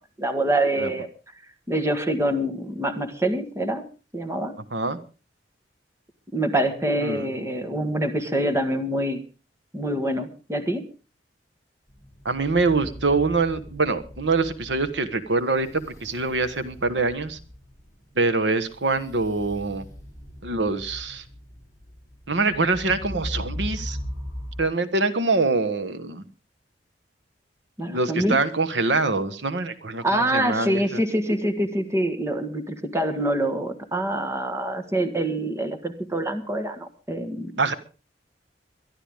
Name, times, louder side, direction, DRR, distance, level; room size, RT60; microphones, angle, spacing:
voice 1, 0.2-1.1 1.7-3.8 4.1-4.5 6.3-9.2 9.7-10.9 27.8-28.4 30.0-37.5, right 1 dB, 15° right, 8 dB, 1.6 m, -25 dB
sound 1, 11.9-24.6, equal, 15° left, 4.6 m, -39 dB
voice 2, 12.2-17.4 18.2-19.9 20.4-21.2 22.3-24.0 24.6-26.2 27.9-31.0 37.6-37.7, right 3 dB, 85° right, 10 dB, 1.4 m, -24 dB
22.5 x 12.0 x 3.6 m, 0.33 s
head